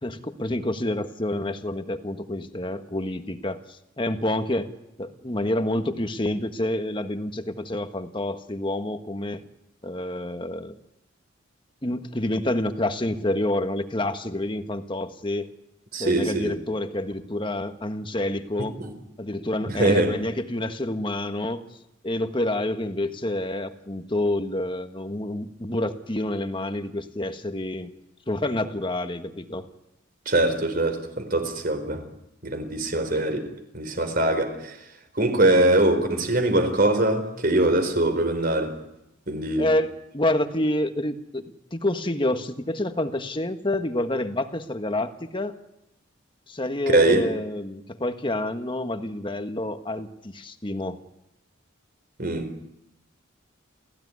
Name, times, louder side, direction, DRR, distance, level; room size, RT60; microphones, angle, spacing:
voice 1, 0.0-4.7 5.0-9.4 9.8-10.7 11.8-15.5 16.0-18.8 19.2-21.6 22.0-27.9 28.3-29.7 39.6-45.6 46.5-51.0, left 1 dB, 25° left, 1.5 m, -28 dB
voice 2, 15.9-16.5 18.8-18.9 19.8-20.1 30.3-32.0 32.4-33.4 33.7-34.8 35.2-38.7 39.3-39.7 46.9-47.2 52.2-52.4, right 2 dB, 45° right, 4.3 m, -22 dB
29.0 x 15.5 x 9.7 m
head